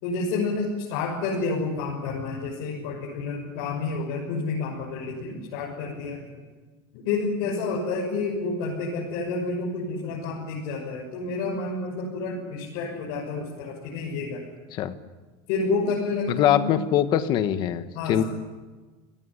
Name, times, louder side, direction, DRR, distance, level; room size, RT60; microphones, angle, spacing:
voice 1, 0.0-6.4 6.9-14.4 15.5-16.7 17.9-18.3, left 3 dB, 60° left, -3 dB, 6.4 m, -29 dB
voice 2, 16.3-18.2, left 10 dB, 40° left, 10 dB, 1.4 m, -23 dB
27.5 x 18.0 x 9.9 m, 1.3 s
supercardioid pair, 170°, 12 cm